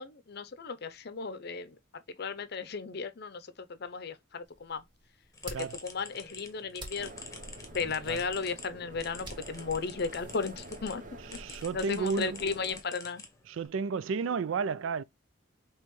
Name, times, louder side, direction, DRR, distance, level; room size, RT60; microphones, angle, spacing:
voice 1, 0.0-4.8 5.4-7.1 7.7-11.0 11.7-13.2, left 4 dB, 55° left, 0.6 m, -35 dB
sound 1, 4.4-11.6, right 2 dB, 25° right, 1.4 m, -52 dB
sound 2, 5.3-11.0 11.3-13.7, left 4 dB, 15° left, 1.2 m, -48 dB
sound 3, 7.0-12.8, right 1 dB, 40° right, 0.8 m, -47 dB
voice 2, 11.4-12.4 13.5-15.0, right 5 dB, 75° right, 0.4 m, -32 dB
5.5 x 3.0 x 3.1 m
head